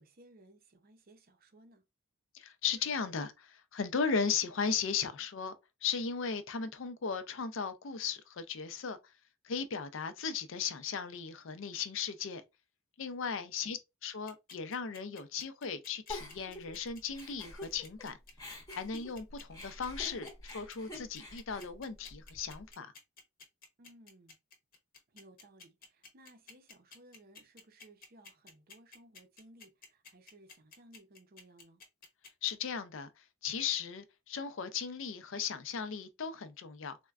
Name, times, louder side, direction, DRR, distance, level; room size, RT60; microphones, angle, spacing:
voice 1, 0.0-1.8 13.6-13.8 23.8-24.4 25.1-31.8, right 1 dB, 45° right, 0.6 m, -59 dB
voice 2, 2.3-5.5 5.8-9.1 9.4-12.4 13.0-18.2 18.7-22.9 32.4-37.0, left 6 dB, 65° left, 0.5 m, -36 dB
sound 1, 14.3-32.5, left 4 dB, 45° left, 0.9 m, -53 dB
Giggle, 16.1-18.1 18.4-22.6, left 2 dB, 20° left, 0.8 m, -47 dB
4.2 x 2.2 x 2.3 m
head